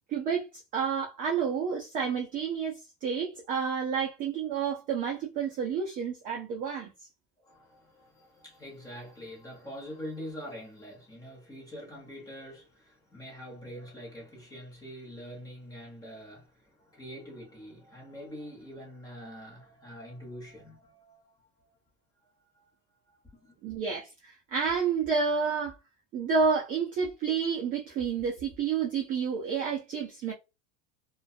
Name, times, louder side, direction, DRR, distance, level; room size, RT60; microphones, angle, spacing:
voice 1, 0.1-0.5 0.7-6.9 23.6-25.8 26.1-30.3, right 6 dB, 25° right, 0.3 m, -30 dB
voice 2, 7.4-21.7 22.2-23.6, equal, 10° left, 1.0 m, -45 dB
2.5 x 2.3 x 2.4 m
cardioid pair, 170°, 38 cm